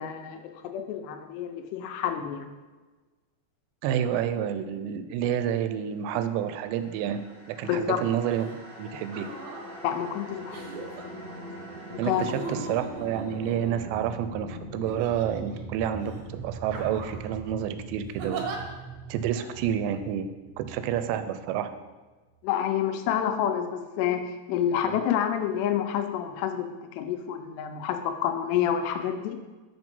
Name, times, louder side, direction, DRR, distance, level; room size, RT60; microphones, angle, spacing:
voice 1, 0.0-2.5 7.7-8.0 9.8-10.8 11.9-12.2 22.4-24.2 24.5-26.7 26.9-29.4, left 9 dB, 80° left, 6 dB, 2.7 m, -28 dB
voice 2, 3.8-8.5 8.8-9.3 12.0-18.4 19.1-20.3 20.6-21.7 24.9-25.0, right 9 dB, 85° right, 11 dB, 2.7 m, -29 dB
sound 1, 6.5-21.8, right 2 dB, 35° right, 0.8 m, -42 dB
sound 2, 8.3-8.6 9.0-9.7 10.5-11.0 12.0-14.1 14.9-15.6 16.0-16.2 16.7-17.3 18.2-18.6 19.4-19.5, right 4 dB, 70° right, 2.4 m, -39 dB
6.1 x 5.9 x 5.3 m, 1.3 s
omnidirectional pair, 4.9 m